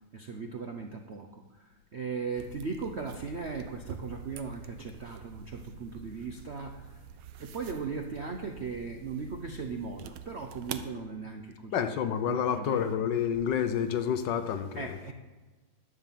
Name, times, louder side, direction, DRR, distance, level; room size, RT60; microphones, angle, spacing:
voice 1, 0.1-7.0 7.4-11.9 12.3-12.9 14.8-15.1, right 4 dB, 65° right, 4 dB, 0.6 m, -38 dB
sound 1, 2.4-10.9, right 8 dB, 80° right, 1.5 m, -46 dB
voice 2, 11.7-14.9, left 8 dB, 70° left, 10 dB, 1.2 m, -29 dB
11.5 x 7.3 x 7.5 m, 1.3 s
omnidirectional pair, 2.2 m